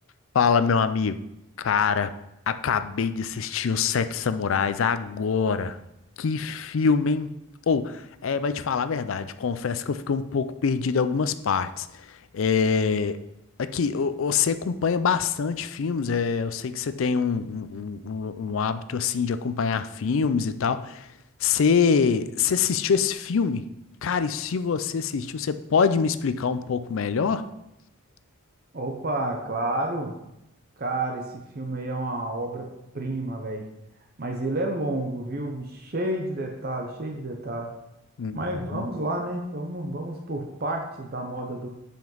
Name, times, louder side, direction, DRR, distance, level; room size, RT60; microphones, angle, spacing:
voice 1, 0.3-1.2 1.6-2.1 2.5-5.8 6.2-7.3 7.7-11.9 12.3-13.2 13.6-21.1 21.4-23.7 24.0-27.4 38.2-38.4 38.7-38.8, left 6 dB, 70° left, 12 dB, 0.4 m, -25 dB
voice 2, 28.7-30.1 30.8-32.7 32.9-33.7 34.2-37.7 38.3-41.7, right 2 dB, 45° right, 2 dB, 0.7 m, -30 dB
7.5 x 5.2 x 3.9 m, 0.86 s
head